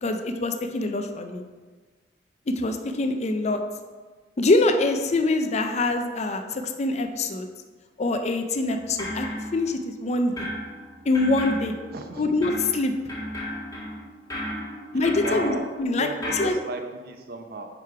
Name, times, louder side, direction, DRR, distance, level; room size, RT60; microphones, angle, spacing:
voice 1, 0.0-1.4 2.6-3.6 4.4-7.5 8.0-9.3 9.5-10.5 11.1-11.7 12.2-12.9 14.9-16.1 16.3-16.5, left 2 dB, 40° left, 6 dB, 0.5 m, -24 dB
sound 1, 8.7-10.0 10.4-16.5, left 1 dB, 20° left, 1.4 m, -34 dB
voice 2, 11.9-12.3 14.9-15.7 15.9-17.7, right 2 dB, 60° right, 5 dB, 0.7 m, -35 dB
5.1 x 4.7 x 4.6 m, 1.4 s
head